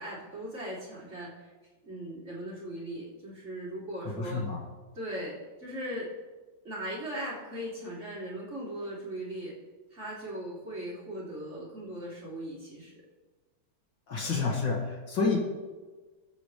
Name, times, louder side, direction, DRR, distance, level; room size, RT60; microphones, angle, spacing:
voice 1, 0.0-1.5 1.8-4.4 4.9-6.1 6.6-9.5 9.9-12.9, right 1 dB, 35° right, -6 dB, 3.3 m, -38 dB
voice 2, 4.2-4.6 14.1-15.4, left 4 dB, 65° left, -2 dB, 2.7 m, -29 dB
21.0 x 8.2 x 3.3 m, 1.3 s
omnidirectional pair, 2.2 m